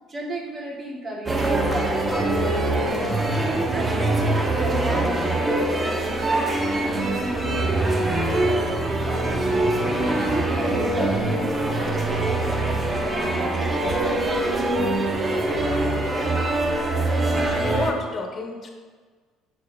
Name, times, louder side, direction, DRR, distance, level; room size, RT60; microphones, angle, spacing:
voice 1, 0.1-2.7 3.2-9.7 10.3-14.8, right 1 dB, 40° right, -3 dB, 2.0 m, -36 dB
sound 1, 1.3-17.9, right 2 dB, 25° right, 1.1 m, -23 dB
voice 2, 17.6-18.7, left 2 dB, 40° left, 2 dB, 1.4 m, -29 dB
6.7 x 6.3 x 3.4 m, 1.5 s
supercardioid pair, 85°, 0 cm